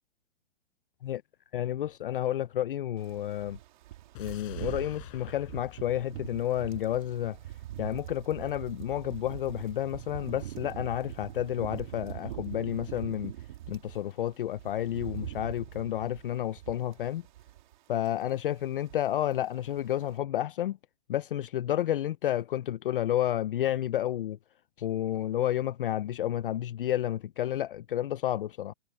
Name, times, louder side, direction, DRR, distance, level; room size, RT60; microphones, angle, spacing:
voice 1, 1.5-3.6 4.2-7.4 7.8-13.3 13.7-17.2 17.9-20.8 21.1-24.4 24.8-28.7, left 12 dB, 55° left, 0.6 m, -31 dB
sound 1, 3.0-14.0 14.3-17.7 18.0-18.3 18.6-19.4 19.7-19.9, right 13 dB, 45° right, 2.8 m, -42 dB
sound 2, 4.1-7.3 7.6-7.7, left 22 dB, 30° left, 4.9 m, -49 dB
hypercardioid pair, 170°, 33 cm